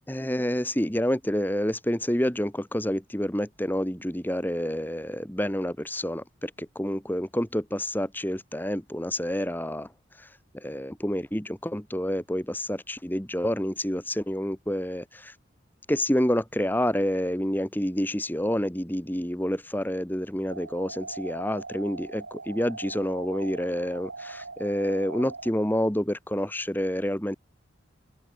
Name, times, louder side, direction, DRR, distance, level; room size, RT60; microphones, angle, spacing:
voice 1, 0.1-9.9 10.2-10.3 10.5-15.3 15.9-27.4, equal, 10° left, 1.7 m, -28 dB
sound 1, 20.5-25.5, right 3 dB, 90° right, 5.2 m, -41 dB
open air
head